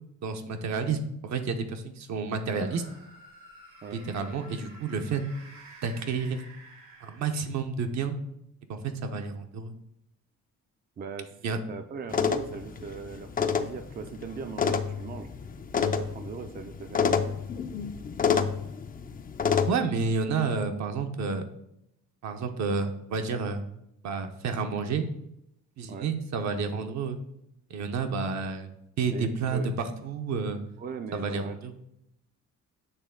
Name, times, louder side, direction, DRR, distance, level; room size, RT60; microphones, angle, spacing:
voice 1, 0.2-2.8 3.9-5.2 5.8-6.4 7.0-8.2 8.7-9.7 11.4-11.6 19.7-21.5 22.2-23.6 24.0-25.1 25.8-27.2 27.7-28.7 29.0-30.6 31.1-31.7, right 4 dB, 65° right, 6 dB, 0.8 m, -30 dB
sound 1, 2.5-7.7, right 1 dB, 85° right, 1.8 m, -51 dB
voice 2, 11.0-11.3 11.7-15.3 15.8-17.4 25.9-26.1 29.1-29.7 30.8-31.6, right 5 dB, 30° right, 8 dB, 0.4 m, -39 dB
sound 2, 12.1-19.7, left 6 dB, 30° left, 0.4 m, -29 dB
8.2 x 3.2 x 3.6 m, 0.80 s
cardioid pair, 90°, 30 cm